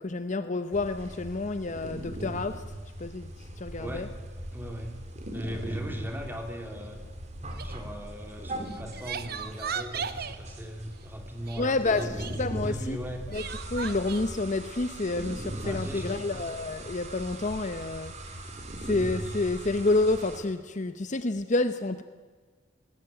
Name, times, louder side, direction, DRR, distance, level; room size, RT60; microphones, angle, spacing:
voice 1, 0.0-2.6 3.0-4.1 11.6-13.0 13.3-13.4 13.7-18.1 18.8-22.0, left 2 dB, 40° left, 11 dB, 0.8 m, -29 dB
sound 1, 0.7-20.4, right 1 dB, 35° right, 2.8 m, -39 dB
voice 2, 3.8-4.1 4.5-4.9 5.3-7.0 7.6-12.2 12.6-13.2 15.6-16.4, equal, 10° right, 3 dB, 3.1 m, -38 dB
Crying sobbing, 7.5-7.8 8.6-10.4 11.5-12.4 13.3-14.2, right 7 dB, 50° right, 1.2 m, -37 dB
19.5 x 18.5 x 9.1 m, 1.4 s
head